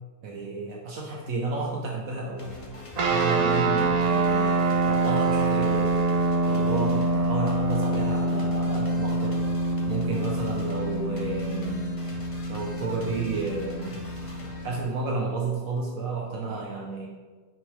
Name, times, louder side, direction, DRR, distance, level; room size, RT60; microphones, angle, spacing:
voice 1, 0.2-2.6 3.1-6.0 6.5-9.4 9.9-14.0 14.6-17.1, right 3 dB, 70° right, -1 dB, 1.3 m, -32 dB
sound 1, 2.4-14.8, left 1 dB, 25° left, 1.0 m, -42 dB
sound 2, 3.0-14.8, right 2 dB, 45° right, 0.5 m, -25 dB
8.5 x 6.5 x 3.3 m, 1.4 s
omnidirectional pair, 1.6 m